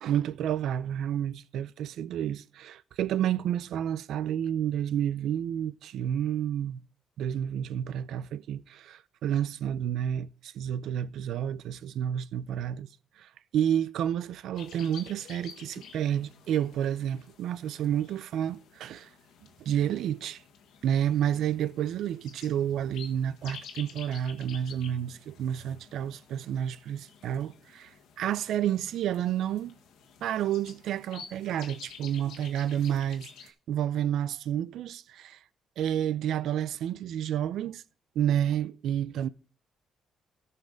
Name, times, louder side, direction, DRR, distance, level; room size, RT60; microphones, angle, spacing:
voice 1, 0.0-6.8 7.2-12.9 13.2-19.1 19.6-20.4 20.8-29.8 30.2-35.4 35.8-37.8 38.2-39.3, right 10 dB, 80° right, 0.5 m, -30 dB
sound 1, 14.5-33.5, left 7 dB, 85° left, 1.5 m, -51 dB
14.0 x 5.6 x 5.2 m
cardioid pair, 90°, 0 cm